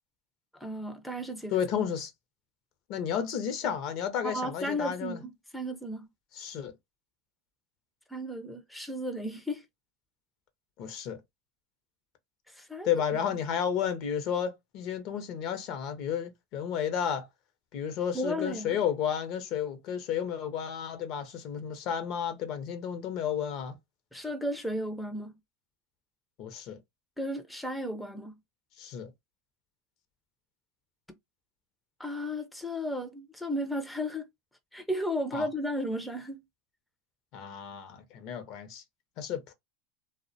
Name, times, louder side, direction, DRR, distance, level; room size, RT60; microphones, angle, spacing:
voice 1, 0.6-1.6 4.2-6.1 8.1-9.6 12.5-12.9 18.1-18.8 24.1-25.3 27.2-28.3 32.0-34.3 34.7-36.4, equal, ahead, 0.4 m, -34 dB
voice 2, 1.5-2.1 2.9-5.2 6.3-6.7 10.8-11.2 12.8-17.3 17.7-23.7 26.4-26.8 28.8-29.1 35.3-35.5 37.3-38.8 39.2-39.5, left 8 dB, 50° left, 0.5 m, -32 dB
2.3 x 2.1 x 2.5 m
supercardioid pair, 115°, 0 cm